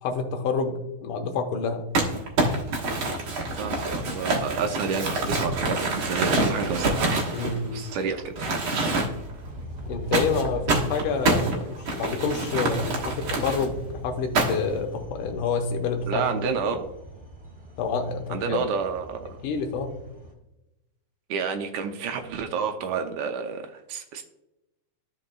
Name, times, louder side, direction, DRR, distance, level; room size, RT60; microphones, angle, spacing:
voice 1, 0.0-1.9 7.3-7.9 9.9-16.8 17.8-18.6 19.4-19.9, left 5 dB, 80° left, 4 dB, 2.5 m, -28 dB
Crumpling crinkling, 1.9-8.0 8.4-9.3 10.1-13.7 14.3-14.8, right 2 dB, 50° right, 1.8 m, -26 dB
sound 1, 2.4-20.3, equal, 15° right, 2.5 m, -42 dB
voice 2, 3.6-7.1 7.7-8.3 16.1-16.8 18.3-19.4 21.3-24.2, right 6 dB, 80° right, 5 dB, 1.9 m, -29 dB
13.5 x 5.1 x 2.3 m, 0.91 s
omnidirectional pair, 3.7 m